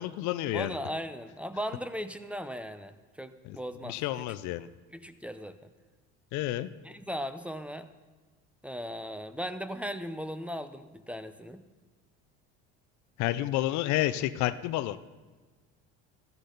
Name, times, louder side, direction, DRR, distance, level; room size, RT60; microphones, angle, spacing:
voice 1, 0.0-0.7 3.4-3.6 3.9-4.7 6.3-6.7 13.2-15.0, left 15 dB, 70° left, 14 dB, 0.6 m, -30 dB
voice 2, 0.5-4.0 4.9-5.5 6.8-7.9 8.6-11.6, equal, 5° right, 11 dB, 0.6 m, -37 dB
13.5 x 13.0 x 4.0 m, 1.3 s
supercardioid pair, 95°, 30 cm